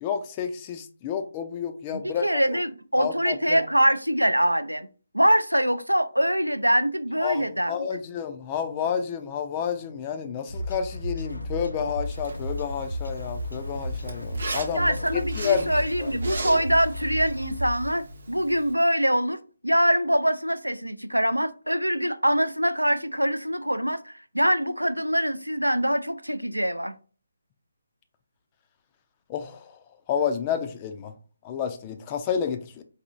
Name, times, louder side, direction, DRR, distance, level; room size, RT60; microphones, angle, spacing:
voice 1, 0.0-2.6 3.0-3.6 7.2-16.1 29.3-29.7 30.1-31.1 31.4-32.8, left 7 dB, 20° left, 0.4 m, -30 dB
voice 2, 1.9-4.9 5.1-7.9 14.7-26.9, equal, 85° right, 0.3 m, -24 dB
sound 1, 10.5-18.0, left 1 dB, 80° left, 0.6 m, -34 dB
Zipper (clothing), 12.0-18.7, right 2 dB, 55° right, 0.8 m, -38 dB
4.0 x 2.6 x 2.5 m
figure-of-eight pair, 145°, 0 cm